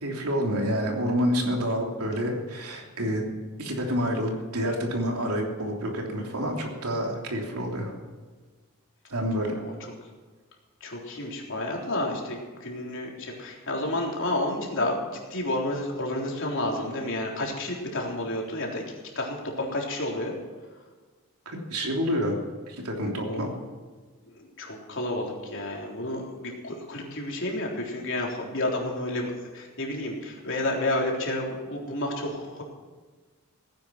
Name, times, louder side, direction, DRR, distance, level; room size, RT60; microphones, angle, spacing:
voice 1, 0.0-3.3 3.6-7.9 9.1-9.6 16.7-16.9 21.4-22.4 22.7-23.5, equal, 90° right, 1 dB, 3.2 m, -28 dB
voice 2, 10.8-18.8 19.1-20.3 23.2-23.6 24.3-32.6, left 1 dB, 60° left, -1 dB, 3.7 m, -30 dB
17.5 x 10.5 x 6.0 m, 1.4 s
head